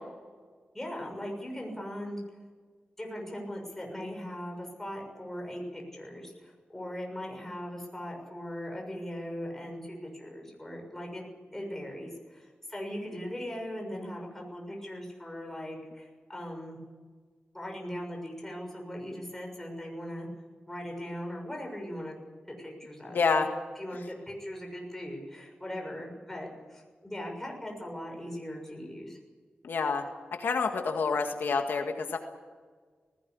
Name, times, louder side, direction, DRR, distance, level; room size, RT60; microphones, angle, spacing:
voice 1, 0.7-2.2 3.0-16.8 17.5-20.3 20.7-22.2 22.5-23.4 23.7-29.2, equal, 10° left, 0 dB, 6.7 m, -39 dB
voice 2, 23.1-23.5 29.6-30.0 30.4-32.2, left 4 dB, 80° left, 4 dB, 1.9 m, -28 dB
20.0 x 17.0 x 8.6 m, 1.5 s
wide cardioid pair, 115°, 4 cm